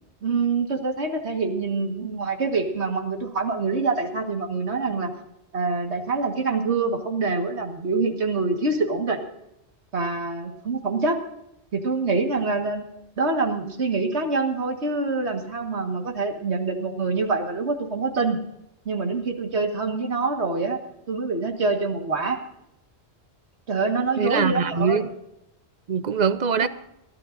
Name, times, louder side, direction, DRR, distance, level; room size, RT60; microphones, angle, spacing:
voice 1, 0.2-5.1 5.5-9.2 9.9-11.2 11.7-12.9 13.2-18.4 18.9-20.8 21.1-22.4 23.7-25.1 26.6-26.7, right 3 dB, 75° right, 4 dB, 1.9 m, -25 dB
voice 2, 24.2-25.0 25.9-26.7, right 6 dB, 50° right, 13 dB, 0.6 m, -22 dB
29.5 x 11.5 x 2.6 m, 0.84 s
omnidirectional pair, 1.2 m